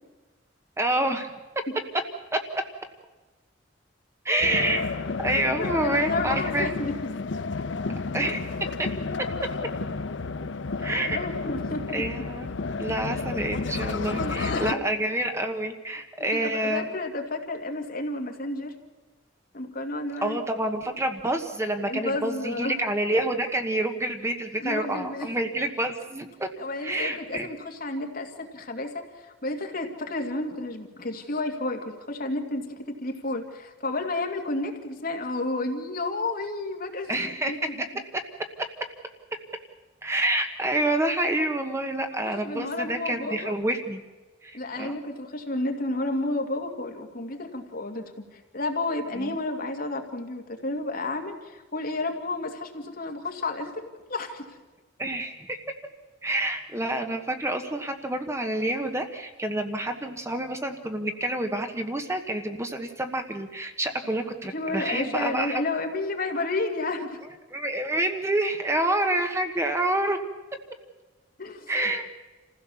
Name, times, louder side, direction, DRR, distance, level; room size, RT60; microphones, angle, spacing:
voice 1, 0.8-1.3 2.3-2.6 4.2-4.9 5.2-6.7 8.1-8.4 8.8-8.9 10.8-11.2 11.9-12.5 12.8-16.9 20.2-26.5 26.8-27.5 37.1-37.5 40.0-44.0 44.4-45.0 49.1-49.4 55.0-55.6 56.2-65.6 67.5-70.2 71.7-72.1, right 1 dB, 15° right, 6 dB, 1.3 m, -28 dB
sound 1, 4.4-14.7, left 4 dB, 75° left, 0.7 m, -31 dB
voice 2, 5.6-6.9 11.1-11.8 14.1-14.8 16.3-18.7 19.5-20.4 21.9-22.8 24.6-25.3 26.6-38.0 42.2-43.5 44.5-54.6 64.5-67.2 71.4-71.7, left 2 dB, 55° left, 3 dB, 2.3 m, -31 dB
27.5 x 15.5 x 7.1 m, 1.2 s
head